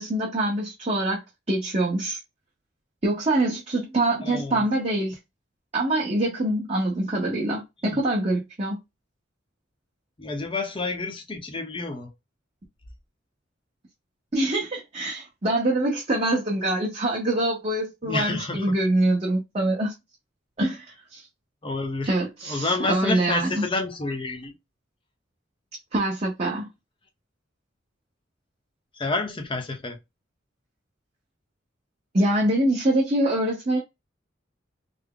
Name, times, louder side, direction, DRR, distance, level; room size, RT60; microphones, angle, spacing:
voice 1, 0.0-2.2 3.0-5.2 5.7-8.8 14.3-19.9 20.6-20.9 21.1-21.2 22.0-23.6 25.9-26.7 32.1-33.8, right 1 dB, 35° right, 0.9 m, -24 dB
voice 2, 4.2-4.6 7.8-8.0 10.2-12.1 18.0-18.8 21.6-22.1 22.5-24.6 29.0-30.0, left 3 dB, 25° left, 0.7 m, -29 dB
3.4 x 2.0 x 3.7 m
head